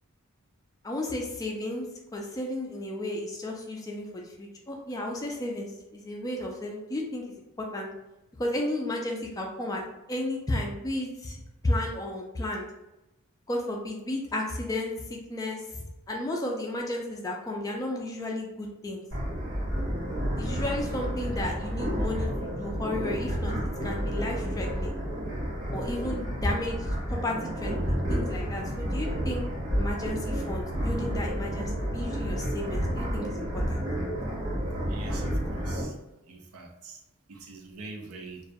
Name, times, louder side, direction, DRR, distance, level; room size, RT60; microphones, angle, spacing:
voice 1, 0.8-1.9 2.1-7.9 8.4-9.8 10.1-12.7 13.5-19.0 20.4-23.5 23.8-25.0 25.7-29.5 29.7-33.8, left 1 dB, 15° left, 0 dB, 0.3 m, -33 dB
sound 1, 19.1-35.8, equal, 65° right, 0.9 m, -30 dB
voice 2, 34.9-35.9 36.3-37.0 37.3-38.4, right 3 dB, 80° right, 2 dB, 0.5 m, -43 dB
2.3 x 2.1 x 2.6 m, 0.94 s
head